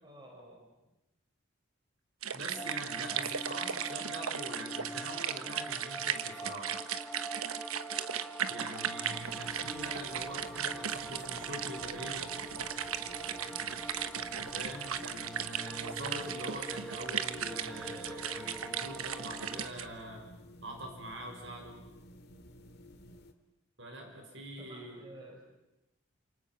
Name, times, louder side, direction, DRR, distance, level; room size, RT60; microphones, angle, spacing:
voice 1, 0.0-0.7 24.0-25.5, right 1 dB, 20° right, 1 dB, 4.9 m, -53 dB
sound 1, 2.2-19.8, right 8 dB, 85° right, 1.2 m, -37 dB
voice 2, 2.3-6.7 8.5-12.4 14.2-20.3 20.6-21.8 23.8-25.0, equal, 55° right, 3 dB, 5.6 m, -44 dB
sound 2, 2.6-19.7, right 1 dB, ahead, 1.4 m, -45 dB
sound 3, 9.1-23.3, equal, 50° left, 2.2 m, -54 dB
29.0 x 27.5 x 5.9 m, 0.96 s
head